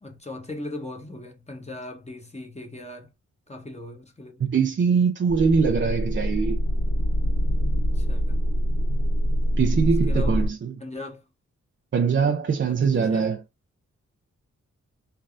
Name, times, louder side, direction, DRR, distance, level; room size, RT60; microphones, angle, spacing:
voice 1, 0.0-3.1 3.5-4.4 7.9-8.4 10.1-10.4 10.8-11.2 12.7-13.3, left 2 dB, 20° left, 1.0 m, -38 dB
voice 2, 4.4-6.6 9.6-10.8 11.9-13.4, right 5 dB, 40° right, 0.5 m, -22 dB
sound 1, 5.3-10.5, equal, 85° left, 1.0 m, -24 dB
3.3 x 2.3 x 2.5 m
cardioid pair, 45°, 30 cm